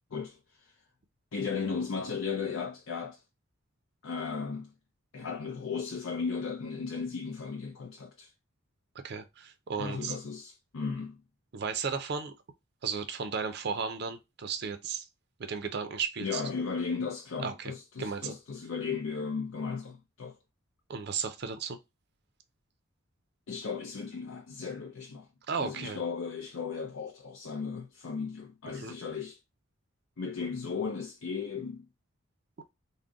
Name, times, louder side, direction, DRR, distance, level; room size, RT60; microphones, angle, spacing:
voice 1, 0.1-0.8 1.3-3.2 4.0-4.7 5.1-8.3 9.8-11.2 16.2-20.4 23.5-25.3 25.6-29.4 30.2-31.9, left 5 dB, 75° left, 0.5 m, -36 dB
voice 2, 9.0-10.1 11.5-12.3 12.8-15.0 15.4-16.4 17.4-17.7 18.0-18.3 20.9-21.8 25.5-26.0 28.7-28.9, right 6 dB, 50° right, 0.4 m, -34 dB
3.7 x 2.1 x 3.5 m
head